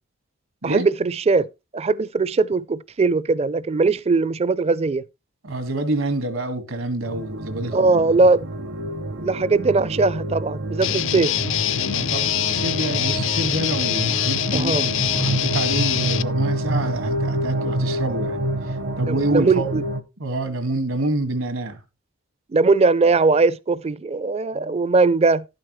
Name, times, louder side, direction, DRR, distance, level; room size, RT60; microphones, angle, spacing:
voice 1, 0.6-1.5 1.7-5.0 7.7-8.4 9.1-11.3 14.5-14.8 19.1-19.8 22.5-25.4, right 3 dB, 30° right, 0.4 m, -20 dB
voice 2, 5.4-8.2 11.9-18.5 19.0-19.7 20.2-21.8 24.5-24.9, right 2 dB, 75° right, 1.7 m, -27 dB
sound 1, 7.0-20.0, right 1 dB, 55° right, 0.8 m, -28 dB
Guitar, 10.8-16.2, left 9 dB, 65° left, 0.6 m, -24 dB
11.5 x 8.9 x 3.1 m
head